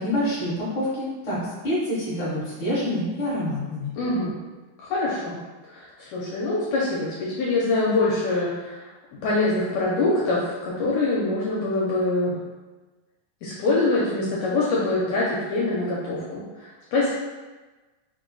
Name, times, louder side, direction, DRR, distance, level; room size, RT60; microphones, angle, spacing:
voice 1, 0.0-3.9, left 1 dB, 50° left, -9 dB, 1.8 m, -27 dB
voice 2, 4.0-4.3 4.8-5.4 5.7-8.9 9.2-12.4 13.4-17.1, left 2 dB, 75° left, -6 dB, 1.9 m, -24 dB
5.3 x 2.4 x 3.8 m, 1.2 s
omnidirectional pair, 3.7 m